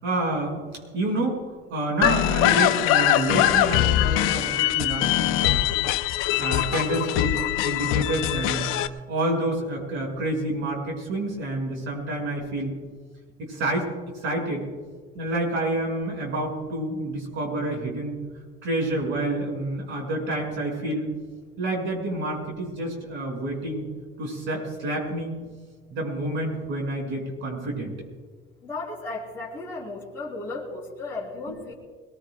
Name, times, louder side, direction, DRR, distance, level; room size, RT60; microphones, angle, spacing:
voice 1, 0.0-0.6 0.9-1.4 1.7-5.6 6.4-7.4 7.6-8.7 9.1-12.7 13.4-13.9 14.2-14.7 15.1-18.2 18.6-21.1 21.6-23.9 24.2-25.3 25.9-27.9 31.5-31.8, right 1 dB, 70° right, 1 dB, 6.1 m, -28 dB
sound 1, 2.0-8.9, left 13 dB, 90° left, 0.7 m, -22 dB
voice 2, 28.6-31.7, left 3 dB, 10° left, -9 dB, 3.3 m, -35 dB
22.0 x 20.5 x 2.3 m, 1.4 s
cardioid pair, 135°, 21 cm